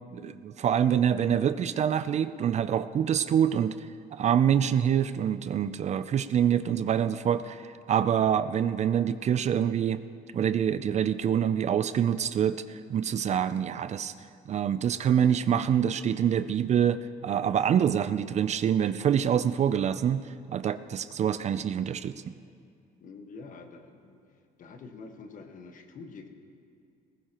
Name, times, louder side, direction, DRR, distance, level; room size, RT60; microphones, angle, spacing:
voice 1, 0.1-10.0 10.3-14.1 14.5-20.3 20.5-22.2, right 9 dB, 40° right, 13 dB, 0.4 m, -26 dB
voice 2, 23.0-24.2 24.6-26.3, left 4 dB, 50° left, 5 dB, 1.4 m, -46 dB
19.5 x 16.5 x 3.0 m, 2.3 s
cardioid pair, 110°, 17 cm